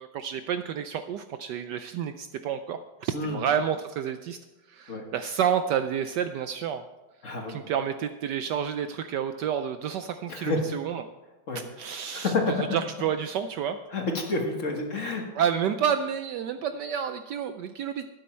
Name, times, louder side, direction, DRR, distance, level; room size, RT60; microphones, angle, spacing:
voice 1, 0.0-4.4 4.7-6.8 7.5-11.0 11.8-12.3 12.7-13.8 15.3-18.1, right 8 dB, 75° right, 9 dB, 1.0 m, -29 dB
voice 2, 3.1-3.4 4.9-5.0 7.2-7.6 10.3-10.6 11.5-11.6 12.1-12.6 13.9-15.2, left 3 dB, 40° left, 2 dB, 1.7 m, -29 dB
12.0 x 9.2 x 4.4 m, 1.0 s
omnidirectional pair, 2.2 m